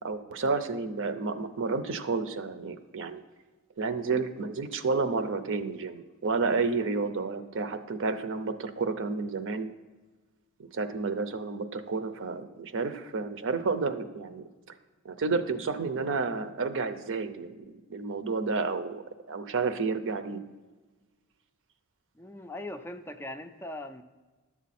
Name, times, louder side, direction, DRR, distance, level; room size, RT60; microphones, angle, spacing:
voice 1, 0.0-3.2 3.8-9.7 10.6-14.4 15.0-19.0 19.3-20.4, right 4 dB, 60° right, 10 dB, 0.6 m, -31 dB
voice 2, 22.1-24.0, left 1 dB, 10° left, 7 dB, 0.4 m, -40 dB
11.0 x 7.2 x 4.2 m, 1.3 s
head